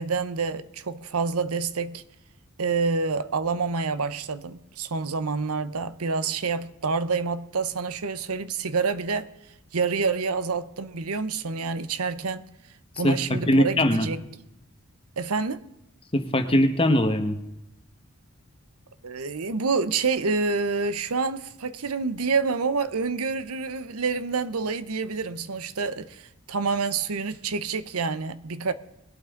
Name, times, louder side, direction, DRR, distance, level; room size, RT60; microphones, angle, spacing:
voice 1, 0.0-2.0 2.6-9.3 9.7-12.4 13.0-14.2 15.2-15.7 19.0-28.7, right 4 dB, 85° right, 0.8 m, -27 dB
voice 2, 13.0-14.1 16.1-17.4, left 1 dB, 25° left, 1.3 m, -21 dB
21.0 x 8.7 x 3.8 m
head